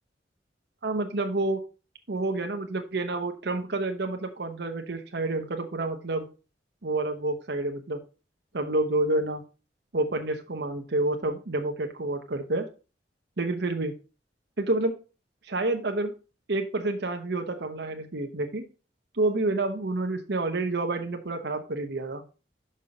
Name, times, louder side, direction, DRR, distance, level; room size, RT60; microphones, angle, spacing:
voice 1, 0.8-1.6 2.1-6.3 6.8-8.0 8.5-9.4 9.9-12.7 13.4-13.9 14.6-15.0 15.4-16.1 16.5-18.6 19.1-22.2, right 2 dB, 65° right, 5 dB, 1.0 m, -28 dB
6.3 x 5.6 x 5.3 m, 0.34 s
head